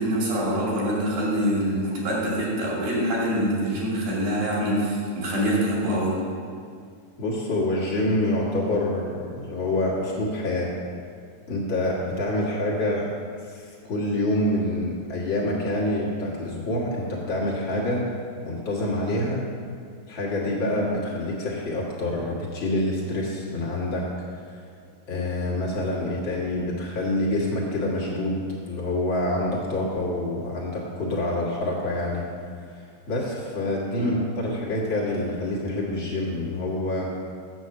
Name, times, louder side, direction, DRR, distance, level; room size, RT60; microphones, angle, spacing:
voice 1, 0.0-6.1 34.0-34.1, equal, 75° right, -5 dB, 4.2 m, -25 dB
voice 2, 7.2-10.7 11.5-13.1 13.4-18.1 18.4-19.4 20.1-24.6 25.1-32.3 32.7-37.1, left 1 dB, 45° left, -5 dB, 1.7 m, -27 dB
8.2 x 7.8 x 6.5 m, 2.3 s
omnidirectional pair, 4.1 m